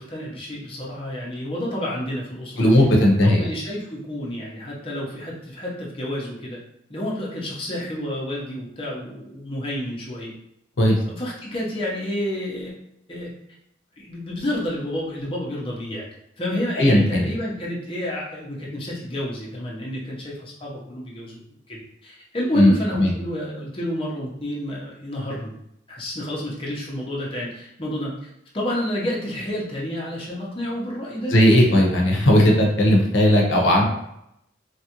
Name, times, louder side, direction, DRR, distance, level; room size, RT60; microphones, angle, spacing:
voice 1, 0.0-2.7 3.2-6.6 6.9-10.3 11.1-12.7 13.1-13.3 14.0-16.1 16.4-25.5 25.9-31.3, left 1 dB, 30° left, -4 dB, 0.7 m, -30 dB
voice 2, 2.6-3.4 10.8-11.0 16.8-17.3 22.6-22.7 23.0-23.1 31.3-33.8, left 1 dB, 80° left, 0 dB, 0.7 m, -16 dB
3.3 x 2.5 x 2.9 m, 0.79 s
head